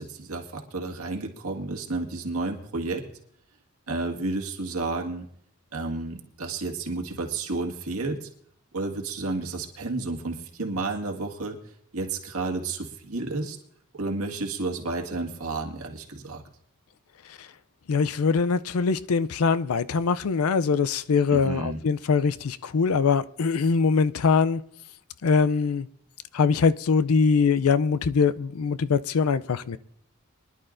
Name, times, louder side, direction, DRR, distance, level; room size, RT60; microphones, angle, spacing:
voice 1, 0.0-3.0 3.9-5.3 5.7-8.3 8.7-13.6 13.9-16.4 21.3-21.8, right 3 dB, 90° right, 1.9 m, -31 dB
voice 2, 17.9-24.6 25.2-25.9 26.3-29.8, left 5 dB, 75° left, 0.5 m, -22 dB
24.0 x 11.0 x 2.6 m
head